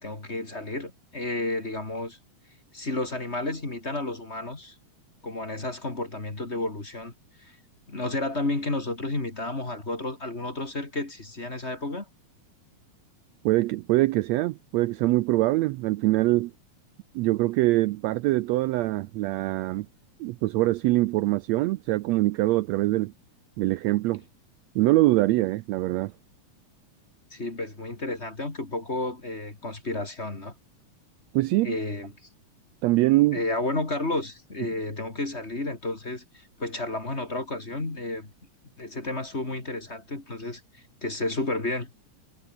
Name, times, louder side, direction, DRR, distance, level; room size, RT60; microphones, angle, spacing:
voice 1, 0.0-2.2 2.7-4.7 5.2-7.1 7.4-7.6 7.9-12.1 27.3-30.5 31.6-32.1 33.3-38.3 38.8-40.6 41.0-41.9, left 2 dB, 20° left, 2.9 m, -31 dB
voice 2, 13.5-16.5 17.2-19.9 20.2-23.1 23.6-24.2 24.8-26.1 31.3-31.8 32.8-33.4, right 18 dB, 80° right, 1.6 m, -23 dB
omnidirectional pair, 3.5 m